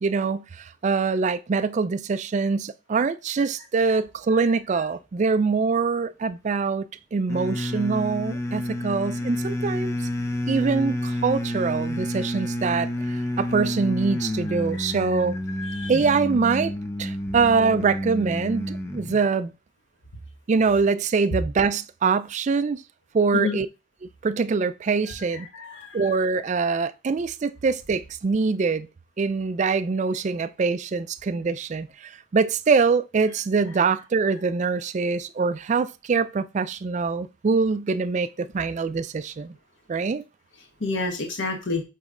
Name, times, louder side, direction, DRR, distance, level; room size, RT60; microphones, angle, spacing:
voice 1, 0.0-10.0 10.5-15.4 15.9-16.7 17.0-19.5 20.5-22.8 23.1-23.7 24.2-25.5 25.9-28.9 29.2-39.6 39.9-40.2, right 4 dB, 35° right, 0.3 m, -24 dB
sound 1, 7.3-19.2, left 1 dB, 15° left, 0.5 m, -29 dB
voice 2, 15.6-15.9 23.3-23.6 25.5-26.2 40.8-41.8, left 3 dB, 65° left, 1.1 m, -29 dB
8.3 x 3.1 x 3.7 m
head